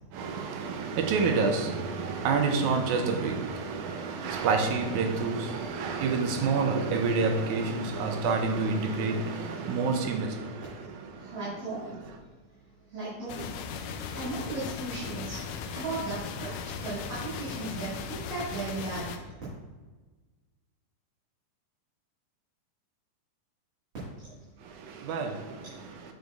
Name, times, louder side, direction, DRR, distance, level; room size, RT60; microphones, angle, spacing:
voice 1, 0.1-10.7 25.0-25.4, right 4 dB, 80° right, 5 dB, 1.8 m, -28 dB
voice 2, 11.1-11.9 12.9-13.6 14.1-15.4 15.7-16.5 16.8-19.3, right 3 dB, 40° right, -11 dB, 2.2 m, -36 dB
sound 1, 13.3-19.2, left 6 dB, 80° left, 2.0 m, -37 dB
7.7 x 6.9 x 2.4 m, 1.3 s
omnidirectional pair, 3.9 m